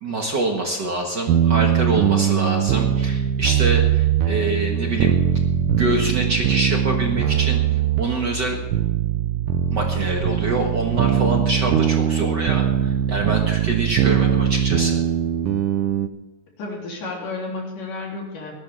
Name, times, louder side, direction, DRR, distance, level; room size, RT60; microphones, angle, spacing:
voice 1, 0.0-5.2 5.8-7.6 8.0-8.6 9.7-15.0, right 2 dB, 55° right, 1 dB, 1.2 m, -25 dB
sound 1, 1.3-16.1, right 10 dB, 75° right, 1.9 m, -21 dB
voice 2, 16.6-18.5, left 3 dB, 60° left, -2 dB, 4.9 m, -31 dB
20.5 x 12.0 x 3.6 m, 1.1 s
omnidirectional pair, 4.4 m